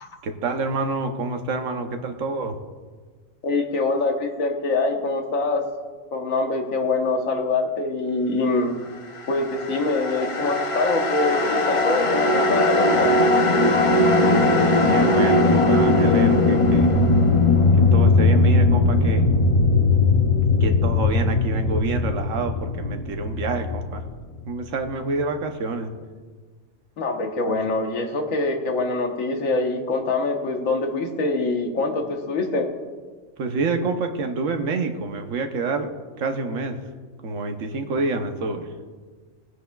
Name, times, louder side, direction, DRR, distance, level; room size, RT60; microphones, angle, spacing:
voice 1, 0.2-2.6 14.2-17.0 17.7-19.3 20.6-24.0 24.5-25.9 27.5-27.6 33.4-35.9 36.2-36.8 37.2-38.7, right 3 dB, 75° right, 5 dB, 1.3 m, -27 dB
voice 2, 3.4-5.6 6.1-8.8 9.3-13.1 27.0-32.7, left 3 dB, 85° left, 3 dB, 1.5 m, -24 dB
sound 1, 9.4-24.7, left 2 dB, 40° left, 0.4 m, -19 dB
18.0 x 9.6 x 2.3 m, 1.5 s
omnidirectional pair, 1.4 m